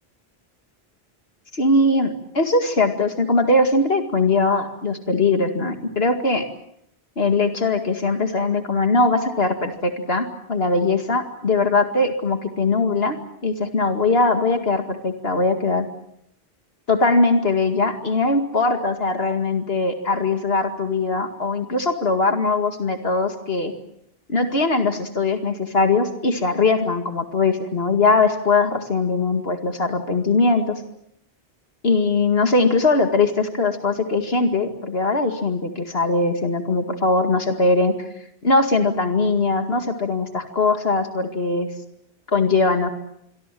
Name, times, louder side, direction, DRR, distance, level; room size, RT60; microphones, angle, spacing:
voice 1, 1.5-6.4 7.2-13.2 13.4-15.9 16.9-23.7 24.3-30.8 31.8-37.9 38.4-41.7 42.3-42.9, left 3 dB, 70° left, 6 dB, 2.4 m, -20 dB
27.0 x 23.5 x 7.7 m, 0.73 s
omnidirectional pair, 1.1 m